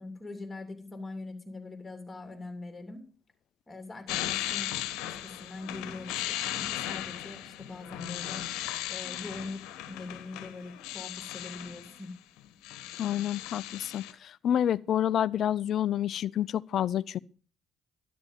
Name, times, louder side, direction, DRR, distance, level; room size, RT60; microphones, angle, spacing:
voice 1, 0.0-3.1 3.7-8.4 8.9-12.1, left 3 dB, 20° left, 3.1 m, -42 dB
sound 1, 4.1-12.0 12.4-14.1, left 13 dB, 75° left, 1.1 m, -37 dB
voice 2, 13.0-17.2, left 10 dB, 60° left, 0.5 m, -28 dB
12.5 x 11.0 x 5.4 m
hypercardioid pair, 55°, 0 cm